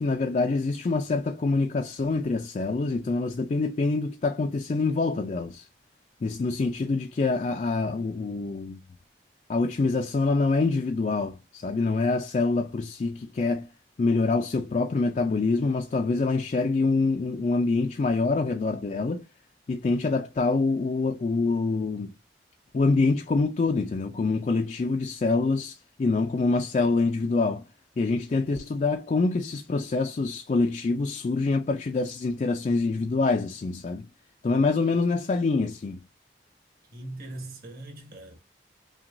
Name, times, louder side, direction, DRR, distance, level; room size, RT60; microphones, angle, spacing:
voice 1, 0.0-5.7 6.2-8.8 9.5-13.7 14.0-19.2 19.7-22.1 22.7-27.6 28.0-34.1 34.4-36.0, left 3 dB, 40° left, 0.3 m, -25 dB
voice 2, 36.9-38.4, right 1 dB, 55° right, 1.5 m, -40 dB
5.8 x 2.3 x 2.6 m
head